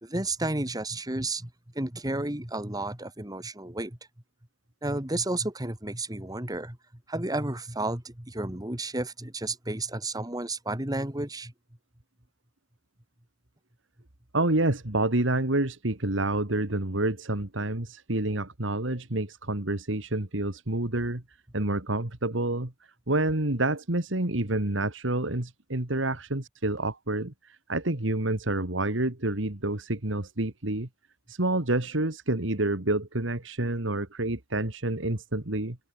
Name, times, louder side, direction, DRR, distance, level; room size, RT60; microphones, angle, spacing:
voice 1, 0.0-4.0 4.8-6.8 7.1-11.5, right 2 dB, 20° right, 2.4 m, -32 dB
voice 2, 14.3-21.2 21.5-22.7 23.1-30.9 31.3-35.8, right 2 dB, 75° right, 2.3 m, -28 dB
head